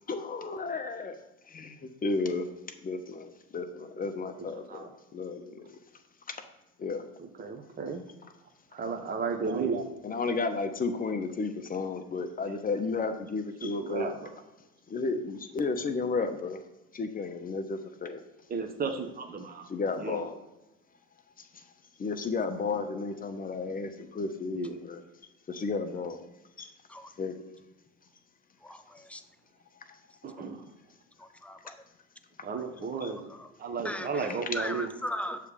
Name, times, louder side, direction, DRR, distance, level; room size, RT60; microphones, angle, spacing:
voice 1, 0.1-1.2 1.5-1.8 2.0-2.5 2.8-4.9 5.1-5.7 6.8-7.0 10.0-14.1 14.9-16.6 16.9-18.2 19.7-20.4 22.0-25.0 25.5-26.3 26.6-26.7 27.2-27.3 33.0-33.1, left 4 dB, 20° left, 7 dB, 0.8 m, -32 dB
voice 2, 7.2-8.0 8.7-9.9 13.6-14.3 18.5-19.7 20.0-20.2 24.5-24.8 30.2-30.7 32.4-33.3 33.6-34.9, right 5 dB, 25° right, 5 dB, 0.9 m, -34 dB
voice 3, 28.6-29.2 31.4-31.7 33.8-34.3 34.5-35.4, left 1 dB, 5° left, 8 dB, 0.3 m, -37 dB
6.7 x 3.3 x 5.1 m, 0.98 s
hypercardioid pair, 85°, 39 cm